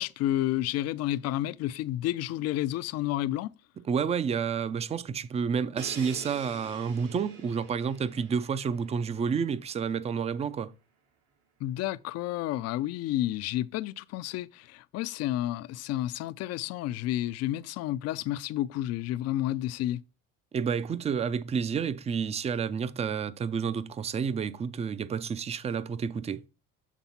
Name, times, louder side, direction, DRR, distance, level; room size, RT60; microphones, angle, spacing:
voice 1, 0.0-3.5 11.6-20.0, left 14 dB, 55° left, 0.4 m, -30 dB
voice 2, 3.9-10.7 20.5-26.4, right 6 dB, 20° right, 0.4 m, -30 dB
Crash cymbal, 5.8-9.6, right 5 dB, 65° right, 3.6 m, -46 dB
7.3 x 3.5 x 4.2 m
supercardioid pair, 95°, 30 cm